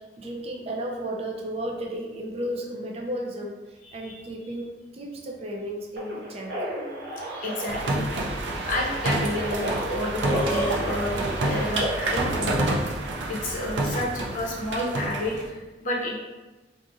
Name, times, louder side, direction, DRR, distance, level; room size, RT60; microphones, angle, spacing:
voice 1, 0.2-3.6 3.9-6.5, right 1 dB, 35° right, 0 dB, 0.4 m, -33 dB
voice 2, 3.8-4.2 7.3-8.2 8.7-12.8 13.3-16.1, left 1 dB, 45° left, -3 dB, 0.7 m, -30 dB
sound 1, 6.0-12.5, right 1 dB, 70° right, 0.8 m, -34 dB
sound 2, 7.7-15.5, right 2 dB, 90° right, 0.5 m, -28 dB
Burping eructation, 10.2-10.8, right 1 dB, 25° left, 1.2 m, -28 dB
2.5 x 2.4 x 3.9 m, 1.2 s
head